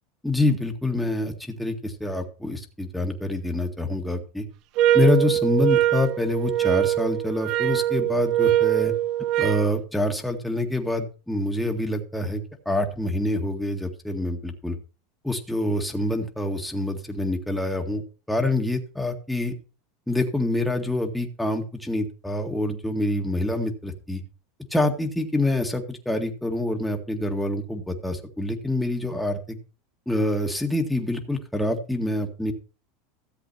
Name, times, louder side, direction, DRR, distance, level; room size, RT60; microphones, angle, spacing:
voice 1, 0.2-4.5 4.9-8.9 9.4-14.8 15.2-18.0 18.3-19.5 20.1-24.2 24.7-29.6 30.1-32.5, left 1 dB, 5° left, 3 dB, 1.9 m, -26 dB
sound 1, 4.8-9.7, right 12 dB, 55° right, 0.5 m, -22 dB
14.0 x 7.7 x 4.3 m, 0.34 s
hypercardioid pair, 100°, 0 cm